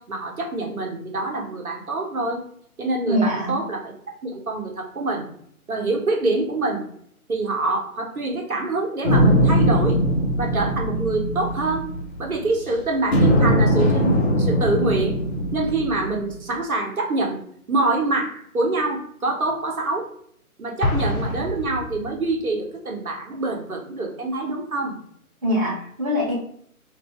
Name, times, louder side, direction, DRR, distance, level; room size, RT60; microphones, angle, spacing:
voice 1, 0.0-2.4 2.8-3.9 4.2-5.3 5.7-6.8 7.3-10.0 10.4-11.9 12.2-15.1 15.5-17.4 17.7-20.1 20.6-24.9, right 2 dB, 75° right, 1 dB, 1.0 m, -25 dB
voice 2, 3.1-3.6 25.4-26.3, equal, 25° right, -6 dB, 0.6 m, -23 dB
sound 1, 9.0-12.6 13.1-16.4, equal, 45° left, 0.8 m, -20 dB
Explosion, 20.8-22.4, left 2 dB, 70° left, 0.9 m, -26 dB
2.6 x 2.6 x 3.3 m, 0.65 s
figure-of-eight pair, 140°, 44 cm